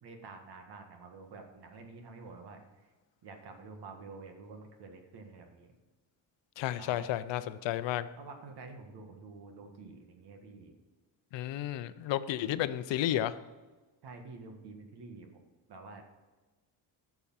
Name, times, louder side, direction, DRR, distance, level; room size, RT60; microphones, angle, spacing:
voice 1, 0.0-2.9 3.2-5.7 6.8-7.2 8.2-10.7 14.0-15.4 15.7-16.0, right 3 dB, 55° right, 5 dB, 1.8 m, -49 dB
voice 2, 6.6-8.1 11.3-13.3, left 12 dB, 70° left, 13 dB, 0.7 m, -32 dB
13.5 x 6.9 x 5.6 m, 1.2 s
cardioid pair, 175°, 46 cm